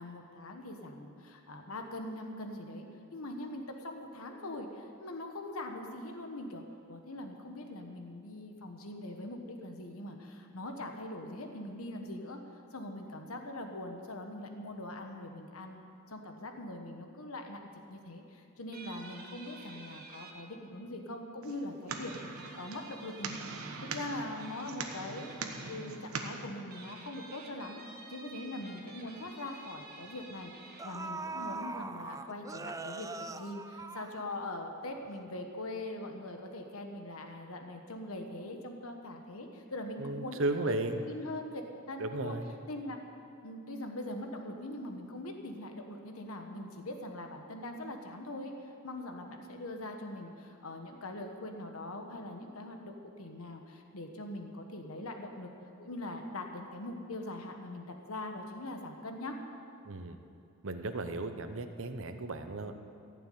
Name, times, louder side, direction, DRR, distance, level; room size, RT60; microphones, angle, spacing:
voice 1, 0.0-2.9 3.1-6.6 6.9-12.4 12.7-15.8 16.1-17.6 17.9-25.3 25.7-27.8 28.1-40.4 40.7-40.8 41.0-41.6 41.9-42.4 42.7-43.0 43.4-55.5 55.8-59.4, left 1 dB, 80° left, 4 dB, 1.3 m, -42 dB
sound 1, 18.7-20.3 21.9-24.0 24.4-25.8 26.6-30.8, right 3 dB, 45° right, 1.7 m, -51 dB
sound 2, 21.4-26.5, right 4 dB, 80° right, 1.2 m, -42 dB
sound 3, 28.6-28.7 29.1-29.3 30.3-30.4 30.8-34.7 35.1-35.2, right 3 dB, 15° right, 0.4 m, -41 dB
voice 2, 40.0-41.0 42.0-42.5 59.8-60.2 60.6-62.8, right 2 dB, 65° right, 8 dB, 0.9 m, -35 dB
15.5 x 7.0 x 9.4 m, 2.6 s
head